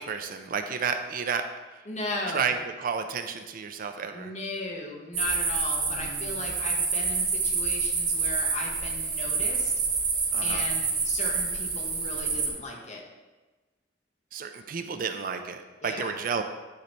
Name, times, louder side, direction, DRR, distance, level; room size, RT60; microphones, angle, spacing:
voice 1, 0.0-1.4 2.3-4.3 10.3-10.6 14.3-16.4, right 6 dB, 50° right, 7 dB, 0.4 m, -31 dB
voice 2, 1.9-2.5 4.1-9.7 10.4-13.0 15.8-16.2, left 2 dB, 40° left, 0 dB, 1.1 m, -36 dB
sound 1, 5.1-12.5, right 4 dB, 90° right, 2.2 m, -28 dB
9.3 x 3.2 x 4.2 m, 1.2 s
head